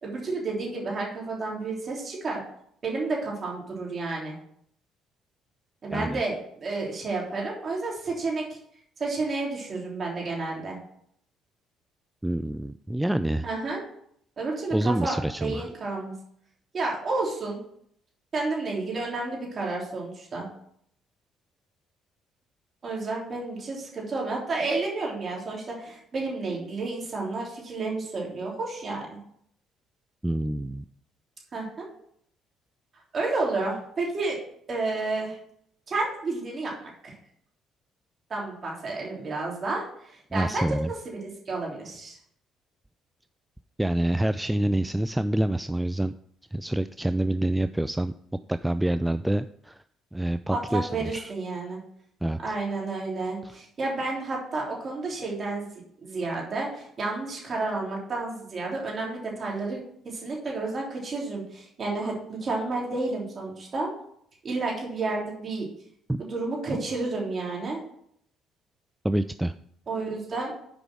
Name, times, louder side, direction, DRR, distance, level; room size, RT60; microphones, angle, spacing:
voice 1, 0.0-2.4 2.8-4.3 5.8-8.6 9.0-10.8 13.4-13.8 14.4-16.1 16.7-17.6 18.3-20.5 22.8-29.2 31.5-31.9 33.1-34.4 34.7-35.4 35.9-37.1 38.3-42.2 50.5-51.8 52.4-55.6 56.0-63.9 64.4-65.7 66.2-67.8 69.9-70.5, right 3 dB, 45° right, -2 dB, 3.3 m, -31 dB
voice 2, 5.9-6.2 12.2-13.5 14.7-15.7 30.2-30.8 40.3-40.9 43.8-46.1 46.5-48.1 48.5-49.8 50.1-51.3 52.2-52.4 66.1-66.2 69.0-69.5, right 1 dB, 5° right, 12 dB, 0.3 m, -27 dB
6.9 x 5.1 x 6.2 m, 0.68 s
supercardioid pair, 65°, 0 cm